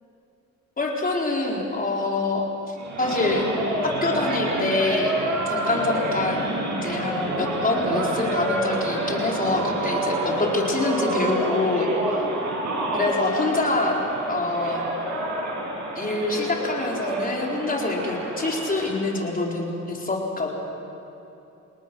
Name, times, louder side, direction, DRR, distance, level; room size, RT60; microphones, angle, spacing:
voice 1, 0.8-3.5 3.8-5.2 5.5-6.4 6.8-11.9 12.9-14.0 14.3-14.8 16.0-20.5, left 2 dB, 30° left, -1 dB, 4.5 m, -25 dB
sound 1, 2.8-19.0, right 1 dB, 70° right, 7.8 m, -28 dB
29.5 x 19.0 x 6.3 m, 2.9 s
cardioid pair, 90°, 30 cm